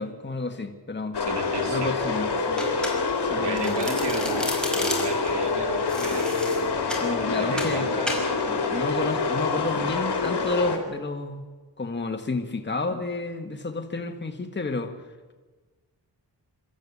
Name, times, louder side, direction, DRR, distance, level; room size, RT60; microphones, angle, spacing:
voice 1, 0.0-1.2 1.7-2.6 3.2-3.8 7.0-7.9 8.7-11.5 11.8-14.9, left 3 dB, 25° left, 5 dB, 1.7 m, -30 dB
sound 1, 1.1-10.8, left 4 dB, 70° left, 3.4 m, -26 dB
voice 2, 1.3-1.9 3.4-6.9 7.3-8.1, right 4 dB, 85° right, 6 dB, 2.2 m, -34 dB
Domestic sounds home sounds, 2.6-3.3 3.6-5.3 5.9-7.1 7.6-7.8 8.1-8.3, left 1 dB, ahead, 5.0 m, -32 dB
26.0 x 13.0 x 8.6 m, 1.4 s
wide cardioid pair, 105°, 41 cm